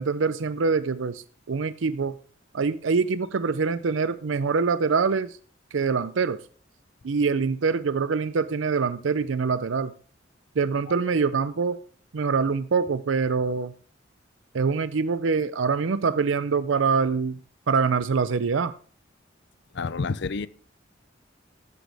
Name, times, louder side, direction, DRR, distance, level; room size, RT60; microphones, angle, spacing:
voice 1, 0.0-2.1 2.5-5.3 5.7-6.4 7.0-9.9 10.6-11.8 12.1-13.7 14.5-17.4 17.7-18.7, right 5 dB, 85° right, 0.5 m, -24 dB
voice 2, 19.7-20.5, left 4 dB, 65° left, 0.6 m, -29 dB
13.0 x 10.0 x 3.5 m
head